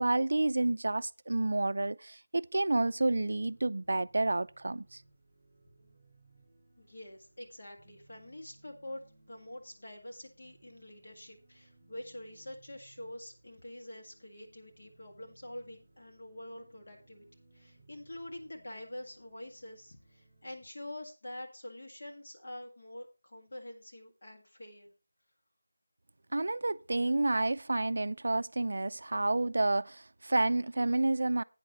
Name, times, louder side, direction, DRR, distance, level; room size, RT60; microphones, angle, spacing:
voice 1, 0.0-5.0 26.3-31.4, right 2 dB, 55° right, 0.4 m, -29 dB
sound 1, 3.3-20.6, right 2 dB, 15° right, 5.4 m, -64 dB
voice 2, 6.8-17.2 17.5-24.9, left 1 dB, 45° left, 1.8 m, -46 dB
12.5 x 9.0 x 3.0 m
figure-of-eight pair, 175°, 0 cm